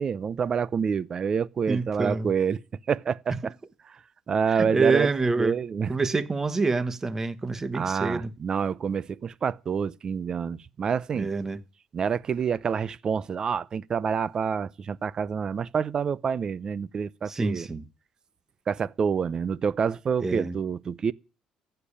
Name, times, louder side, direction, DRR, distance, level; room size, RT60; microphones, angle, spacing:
voice 1, 0.0-2.6 2.9-3.5 4.3-5.1 5.4-5.9 7.7-11.3 11.9-17.7 18.7-21.1, right 6 dB, 35° right, 0.7 m, -27 dB
voice 2, 1.7-2.3 4.5-5.6 5.9-8.3 11.1-11.6 17.3-17.8 20.2-20.6, right 3 dB, 20° right, 1.2 m, -26 dB
15.0 x 6.8 x 10.0 m
cardioid pair, 130°, 2 cm